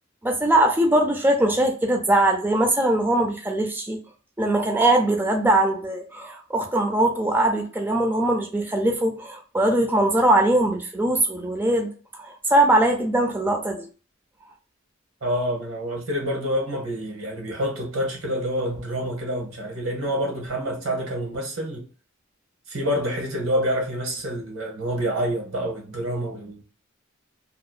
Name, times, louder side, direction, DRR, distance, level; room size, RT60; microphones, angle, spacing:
voice 1, 0.2-4.0 4.4-11.9 12.2-13.9, right 1 dB, 10° right, 0.4 m, -21 dB
voice 2, 15.2-21.9 22.7-26.6, equal, 85° right, 1.1 m, -27 dB
2.8 x 2.0 x 2.3 m
head